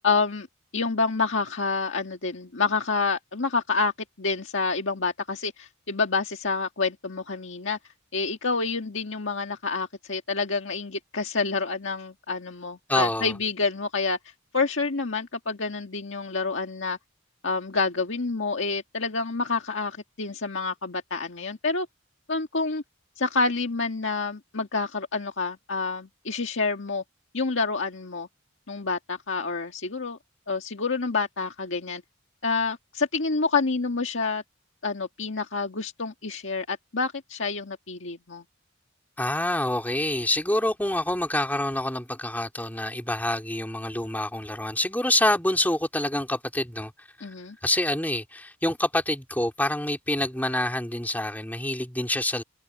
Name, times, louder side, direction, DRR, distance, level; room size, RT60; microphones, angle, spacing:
voice 1, 0.0-0.5 0.7-3.9 4.2-7.8 8.1-17.0 17.4-21.9 22.3-22.8 23.2-27.0 27.3-28.3 28.7-30.2 30.5-32.0 32.4-34.4 34.8-38.4 47.2-47.6, left 4 dB, 70° left, 1.8 m, -28 dB
voice 2, 12.9-13.3 39.2-46.9 47.2-47.3 47.6-52.4, left 1 dB, 10° left, 3.1 m, -26 dB
head